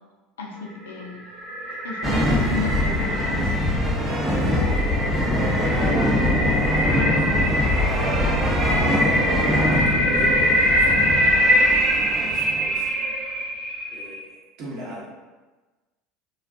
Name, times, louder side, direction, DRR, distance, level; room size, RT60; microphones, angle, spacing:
voice 1, 0.4-1.2 1.7-3.5, left 2 dB, 80° left, 1 dB, 0.4 m, -32 dB
sound 1, 0.8-14.1, equal, 70° right, 1.3 m, -24 dB
sound 2, 2.0-12.7, left 1 dB, 15° right, 0.6 m, -23 dB
voice 2, 5.2-7.3 7.7-8.4 8.7-9.4 9.7-11.4 11.7-12.9 13.9-15.1, equal, 55° right, -6 dB, 0.9 m, -39 dB
2.5 x 2.2 x 2.4 m, 1.2 s
hypercardioid pair, 75°, 0 cm